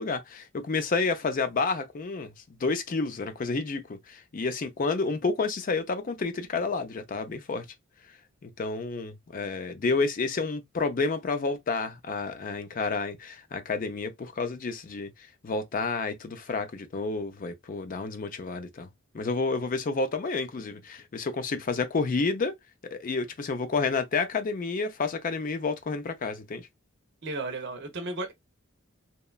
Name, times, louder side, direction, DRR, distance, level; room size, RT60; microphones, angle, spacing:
voice 1, 0.0-2.3 2.6-7.6 8.4-15.1 15.4-18.9 19.1-22.5 22.9-26.7, left 4 dB, 40° left, 0.4 m, -30 dB
voice 2, 27.2-28.3, right 2 dB, 55° right, 0.6 m, -34 dB
2.9 x 2.2 x 2.3 m
head